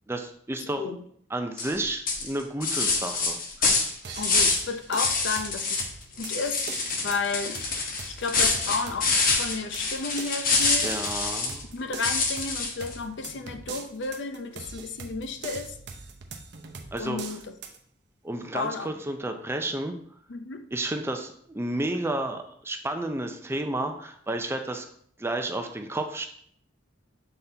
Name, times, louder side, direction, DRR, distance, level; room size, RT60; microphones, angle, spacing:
voice 1, 0.1-0.9 1.3-3.8 10.8-11.6 16.9-17.2 18.2-20.0 20.7-24.9 25.2-26.3, right 1 dB, 15° right, 5 dB, 0.5 m, -31 dB
voice 2, 0.6-1.0 4.2-5.8 6.2-6.7 7.0-7.6 8.1-9.1 9.4-10.9 11.7-15.7 17.0-17.5 18.5-18.9 20.3-20.7, left 4 dB, 65° left, 8 dB, 0.6 m, -32 dB
sound 1, 1.6-1.8 2.1-4.7 5.0-5.9 6.2-11.6 12.0-12.9, left 4 dB, 45° left, 0.9 m, -26 dB
sound 2, 4.0-17.8, right 4 dB, 60° right, 0.7 m, -42 dB
7.0 x 4.1 x 3.3 m, 0.63 s
head